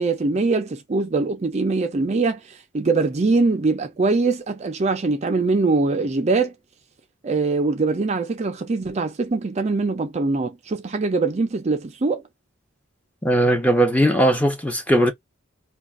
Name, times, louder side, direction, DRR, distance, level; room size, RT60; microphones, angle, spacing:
voice 1, 0.0-6.5 7.2-12.2, right 3 dB, 35° right, 0.4 m, -22 dB
voice 2, 13.2-15.1, right 1 dB, 5° left, 0.7 m, -18 dB
2.4 x 2.3 x 3.5 m
head